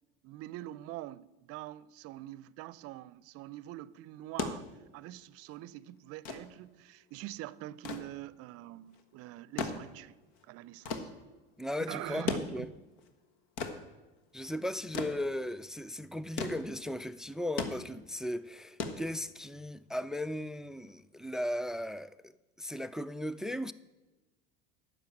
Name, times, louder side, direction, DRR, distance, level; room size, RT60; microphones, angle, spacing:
voice 1, 0.2-4.7 4.9-10.2 10.4-11.1 11.9-12.7, right 15 dB, 55° right, 0.6 m, -44 dB
sound 1, 4.1-19.7 20.9-21.0, left 5 dB, 70° left, 1.5 m, -40 dB
voice 2, 11.6-12.7 14.3-22.2 22.6-23.7, left 1 dB, ahead, 0.3 m, -36 dB
10.5 x 6.7 x 8.9 m
hypercardioid pair, 85°, 29 cm